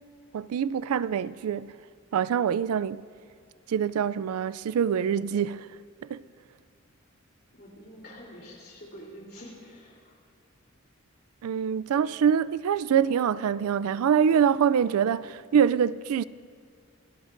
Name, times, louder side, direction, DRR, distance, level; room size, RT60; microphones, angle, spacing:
voice 1, 0.3-1.8 2.1-3.0 3.7-5.7 6.1-6.2 11.4-16.2, right 8 dB, 90° right, 0.3 m, -25 dB
voice 2, 7.5-10.2, equal, 45° left, 3.3 m, -46 dB
26.0 x 14.0 x 2.6 m
head